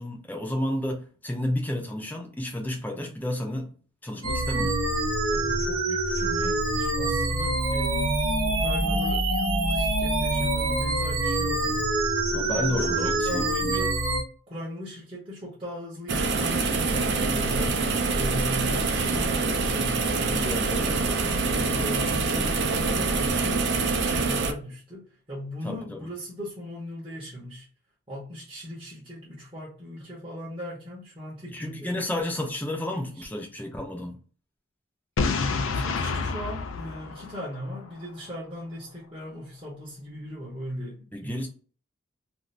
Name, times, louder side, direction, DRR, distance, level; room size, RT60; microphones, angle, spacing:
voice 1, 0.0-3.7 4.0-4.8 12.3-13.8 20.3-21.4 25.6-26.0 31.5-34.2 41.1-41.5, left 1 dB, 10° left, 0.5 m, -31 dB
sound 1, 4.2-14.2, right 2 dB, 80° right, 0.8 m, -25 dB
voice 2, 5.3-11.9 12.3-14.0 14.5-21.1 21.5-27.7 28.1-32.0 32.9-33.3 35.7-41.5, equal, 25° right, 0.8 m, -38 dB
sound 2, 16.1-24.5, right 3 dB, 55° right, 0.4 m, -25 dB
Boom, 35.2-38.0, left 4 dB, 70° left, 0.4 m, -28 dB
2.6 x 2.4 x 3.2 m
head